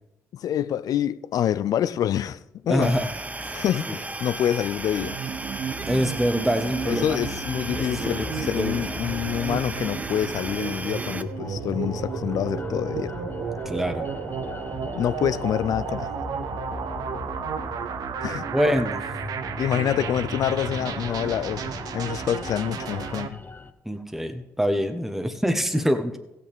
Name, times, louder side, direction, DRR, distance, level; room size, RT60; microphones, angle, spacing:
voice 1, 0.3-2.9 3.5-5.2 6.9-13.1 15.0-16.1 18.2-18.4 19.6-21.7 21.9-23.4, left 10 dB, 65° left, 0.4 m, -26 dB
voice 2, 2.7-3.1 3.4-3.5 3.9-4.0 5.9-7.0 7.7-8.8 13.6-14.1 18.5-19.1 23.8-26.1, equal, 5° right, 1.1 m, -25 dB
sound 1, 2.8-11.2, right 2 dB, 20° right, 0.8 m, -35 dB
sound 2, 5.0-23.3, right 7 dB, 65° right, 0.7 m, -33 dB
sound 3, 6.7-23.7, left 3 dB, 30° left, 0.9 m, -38 dB
15.0 x 8.6 x 3.5 m
hypercardioid pair, 50°, 7 cm